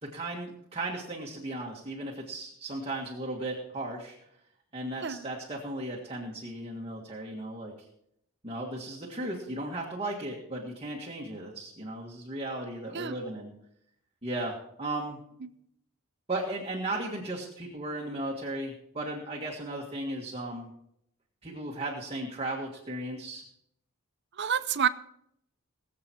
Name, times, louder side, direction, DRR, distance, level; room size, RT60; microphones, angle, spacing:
voice 1, 0.0-4.1 4.7-7.9 8.4-13.5 14.2-15.2 16.3-20.7 21.4-23.4, right 1 dB, 25° right, -2 dB, 1.7 m, -36 dB
voice 2, 24.4-24.9, right 8 dB, 50° right, 14 dB, 0.6 m, -28 dB
20.5 x 7.7 x 4.5 m, 0.75 s
head